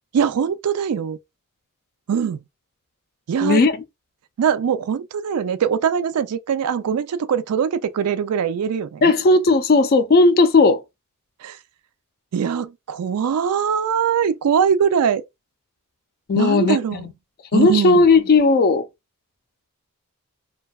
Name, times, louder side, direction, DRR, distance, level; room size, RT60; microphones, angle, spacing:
voice 1, 0.1-1.2 2.1-2.4 3.3-3.6 4.4-9.0 11.4-11.6 12.3-15.2 16.4-17.0 17.5-18.0, right 7 dB, 90° right, 0.4 m, -21 dB
voice 2, 3.4-3.7 9.0-10.8 16.3-17.1 17.5-18.9, left 3 dB, 45° left, 0.4 m, -15 dB
2.6 x 2.2 x 2.2 m
head